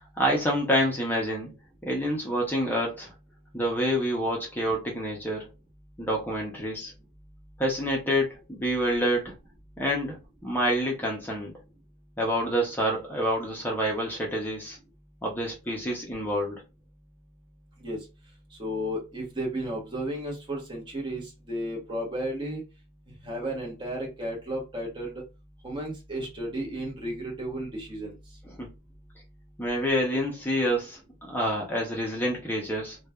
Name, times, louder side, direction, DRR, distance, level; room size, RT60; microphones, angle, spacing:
voice 1, 0.2-1.5 1.8-3.1 3.5-5.4 6.0-6.9 7.6-9.3 9.8-11.5 12.2-14.8 15.2-16.6 28.6-28.7 29.6-31.0 31.3-33.0, equal, 10° left, 0.5 m, -27 dB
voice 2, 18.5-22.6 23.2-25.2 25.6-28.2, right 1 dB, 20° right, 0.9 m, -33 dB
3.0 x 2.2 x 2.3 m
head